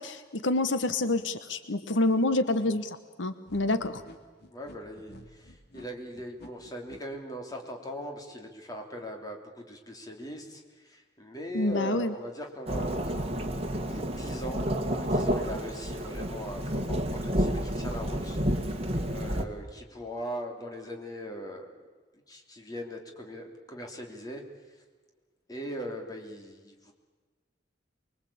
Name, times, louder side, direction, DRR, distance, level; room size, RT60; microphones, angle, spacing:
voice 1, 0.0-4.0 11.5-12.1, left 2 dB, 85° left, 11 dB, 1.2 m, -27 dB
sound 1, 3.5-7.0, left 1 dB, 60° left, 2.8 m, -50 dB
voice 2, 4.5-21.7 22.3-24.4 24.7-24.8 25.5-26.9, equal, 20° left, 2 dB, 3.2 m, -40 dB
Thunderstorm / Rain, 12.7-19.4, equal, 35° right, 2.0 m, -30 dB
24.5 x 22.5 x 8.7 m, 1.4 s
head